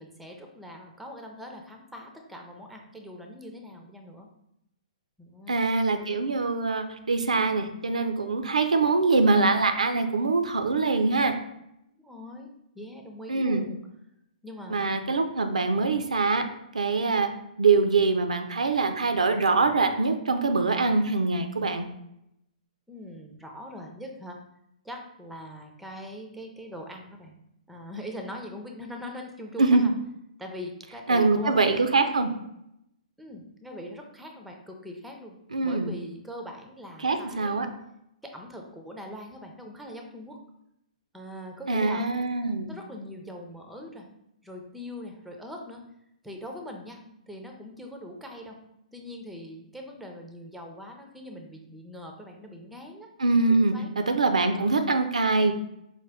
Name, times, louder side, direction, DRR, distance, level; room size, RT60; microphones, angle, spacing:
voice 1, 0.0-4.3 5.2-5.6 11.9-13.8 14.4-14.9 22.9-24.4 24.8-27.3 27.7-29.9 30.4-31.8 33.2-35.4 35.6-37.7 38.2-40.4 41.1-42.1 42.6-44.1 44.4-45.8 46.2-48.6 48.9-53.1 53.5-54.0 54.4-54.9, equal, ahead, 2 dB, 0.5 m, -42 dB
voice 2, 5.5-11.3 13.3-13.6 14.7-16.4 16.7-17.3 17.6-21.9 29.6-29.8 31.1-32.3 35.5-35.9 37.0-37.7 41.7-42.7 53.2-55.5, right 3 dB, 70° right, 7 dB, 0.4 m, -23 dB
4.8 x 2.2 x 3.3 m, 0.80 s
figure-of-eight pair, 120°, 4 cm